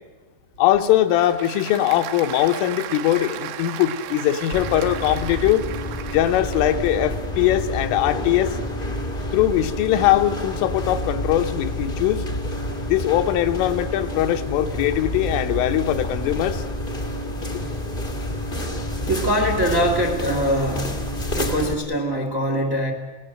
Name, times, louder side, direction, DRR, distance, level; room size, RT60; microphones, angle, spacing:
voice 1, 0.6-5.7 6.1-8.6 9.3-12.3 12.9-16.6, left 12 dB, 90° left, 7 dB, 3.7 m, -21 dB
Applause / Crowd, 0.6-7.0, right 11 dB, 80° right, 3.5 m, -36 dB
sound 1, 4.5-21.7, left 1 dB, 30° left, 0.9 m, -29 dB
voice 2, 19.1-21.0 21.3-22.9, equal, 35° right, 5 dB, 1.2 m, -23 dB
29.0 x 18.0 x 7.9 m, 1.3 s
omnidirectional pair, 5.5 m